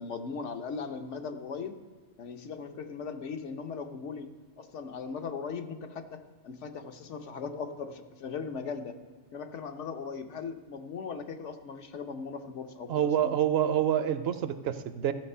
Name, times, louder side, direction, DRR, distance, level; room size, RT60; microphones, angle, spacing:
voice 1, 0.0-1.8 2.2-4.3 4.6-9.0 9.3-13.3, left 5 dB, 80° left, 7 dB, 1.1 m, -38 dB
voice 2, 12.9-15.1, right 10 dB, 65° right, 11 dB, 0.8 m, -27 dB
14.0 x 6.6 x 5.5 m, 1.4 s
omnidirectional pair, 1.2 m